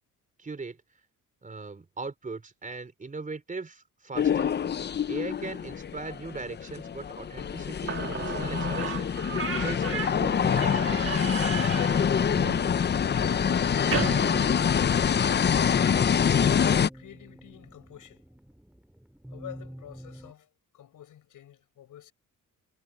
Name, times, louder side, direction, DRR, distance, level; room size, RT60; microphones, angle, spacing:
voice 1, 0.4-0.8 1.4-4.5 5.1-11.9, right 3 dB, 25° right, 4.2 m, -40 dB
sound 1, 4.2-16.9, left 7 dB, 30° left, 0.6 m, -25 dB
Slam / Squeak, 7.6-7.7 7.9-15.4, right 7 dB, 40° right, 2.1 m, -35 dB
sound 2, 15.1-20.3, equal, 5° right, 3.5 m, -47 dB
voice 2, 16.9-18.2 19.3-22.1, left 11 dB, 70° left, 5.2 m, -48 dB
cardioid pair, 125°, 33 cm